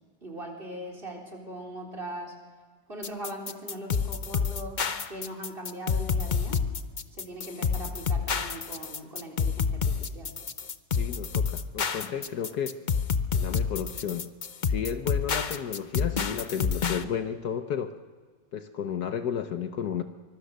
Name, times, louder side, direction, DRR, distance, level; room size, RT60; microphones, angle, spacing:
voice 1, 0.2-2.4 2.9-6.6 7.1-10.3, right 1 dB, 30° right, 3 dB, 4.3 m, -40 dB
sound 1, 3.0-17.0, left 6 dB, 45° left, 0.6 m, -28 dB
voice 2, 11.0-12.8 13.3-14.3 14.6-18.0 18.5-20.0, left 8 dB, 65° left, 8 dB, 1.4 m, -32 dB
24.5 x 22.5 x 6.6 m, 1.5 s
omnidirectional pair, 2.0 m